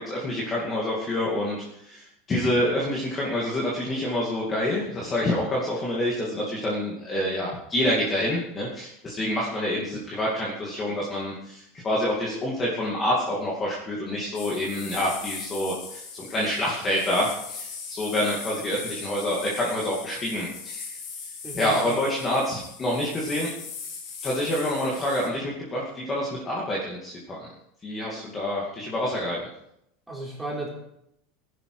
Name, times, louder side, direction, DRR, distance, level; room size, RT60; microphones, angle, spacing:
voice 1, 0.0-20.9 21.5-23.5 24.2-27.5 27.8-29.4, left 1 dB, 15° left, -4 dB, 2.5 m, -27 dB
sound 1, 14.3-25.3, left 5 dB, 35° left, 3.7 m, -39 dB
voice 2, 21.4-22.0 28.2-28.3 30.1-30.7, right 2 dB, 5° right, -4 dB, 4.1 m, -35 dB
18.5 x 11.0 x 5.0 m, 0.79 s
supercardioid pair, 175°, 0 cm